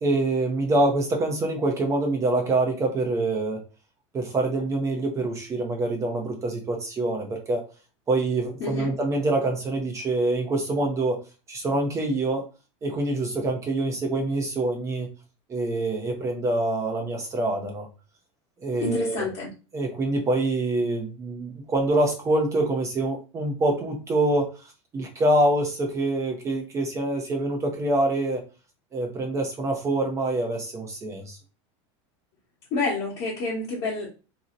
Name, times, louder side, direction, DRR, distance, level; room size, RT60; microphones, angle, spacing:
voice 1, 0.0-3.6 4.1-7.6 8.1-11.2 11.5-12.4 12.8-15.1 15.5-17.9 18.6-19.3 19.7-24.5 24.9-28.4 28.9-31.4, right 2 dB, 20° right, 2 dB, 0.5 m, -25 dB
voice 2, 8.6-8.9 18.8-19.5 32.7-34.1, left 3 dB, 45° left, -6 dB, 1.0 m, -28 dB
2.7 x 2.0 x 3.7 m, 0.32 s
supercardioid pair, 155°, 15 cm